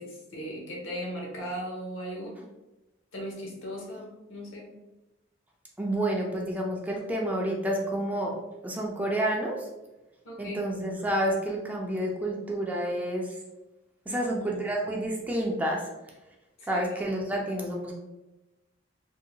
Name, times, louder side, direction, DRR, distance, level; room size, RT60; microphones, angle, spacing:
voice 1, 0.0-2.3 3.1-4.7 10.2-10.6 14.1-14.6 16.6-16.9, equal, 70° left, -1 dB, 0.8 m, -38 dB
voice 2, 5.8-8.3 8.6-9.7 10.4-13.3 14.1-15.8 16.7-18.0, right 1 dB, 10° right, -1 dB, 0.3 m, -29 dB
2.7 x 2.1 x 2.7 m, 1.0 s
head